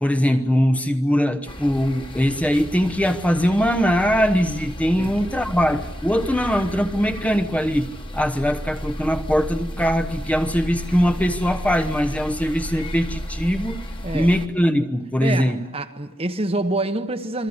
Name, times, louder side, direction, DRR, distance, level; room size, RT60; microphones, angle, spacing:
voice 1, 0.0-13.8 14.1-15.6, equal, 5° left, 1.0 m, -21 dB
sound 1, 1.5-14.5, equal, 25° left, 1.8 m, -33 dB
voice 2, 15.2-17.5, right 2 dB, 25° right, 1.2 m, -26 dB
28.5 x 23.0 x 8.1 m
head